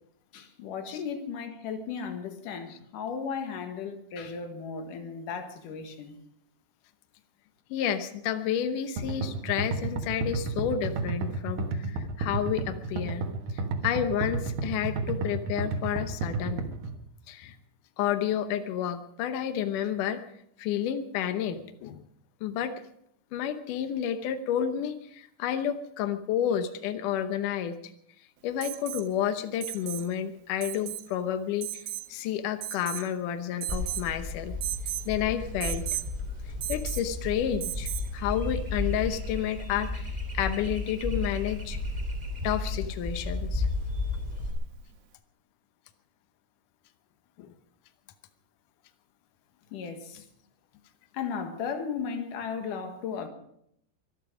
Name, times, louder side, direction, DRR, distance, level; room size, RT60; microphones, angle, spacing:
voice 1, 0.3-6.2 49.7-50.2 51.1-53.3, left 6 dB, 60° left, 2.7 m, -35 dB
voice 2, 7.7-13.2 13.5-16.7 17.3-17.6 18.0-20.2 20.6-22.0 22.4-22.7 23.3-27.8 28.4-31.8 32.1-34.6 35.1-35.9 36.7-41.8 42.4-43.7 47.4-47.5, left 9 dB, 85° left, 1.8 m, -30 dB
sound 1, 9.0-16.9, right 3 dB, 60° right, 2.7 m, -31 dB
Alarm, 28.6-29.1 29.6-30.1 30.6-31.1 31.6-32.1 32.6-33.1 33.6-34.1 34.6-35.1 35.6-36.1 36.6-37.1 37.6-38.1 39.8-39.9, right 14 dB, 80° right, 3.3 m, -35 dB
sound 2, 33.7-44.5, left 2 dB, 15° right, 2.6 m, -33 dB
24.0 x 11.0 x 5.0 m
omnidirectional pair, 5.1 m